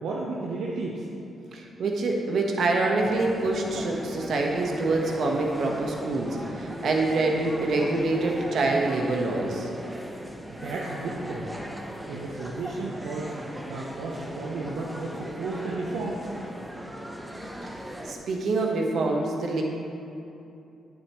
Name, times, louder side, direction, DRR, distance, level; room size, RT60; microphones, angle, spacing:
voice 1, 0.0-1.1 10.5-11.5 12.1-13.3 13.7-16.3, right 3 dB, 85° right, -4 dB, 0.7 m, -33 dB
voice 2, 1.5-9.7 18.0-19.6, right 2 dB, 70° right, 0 dB, 1.1 m, -26 dB
sound 1, 3.0-18.1, equal, 10° right, 0.8 m, -38 dB
8.8 x 7.7 x 3.1 m, 2.7 s
supercardioid pair, 60°, 0 cm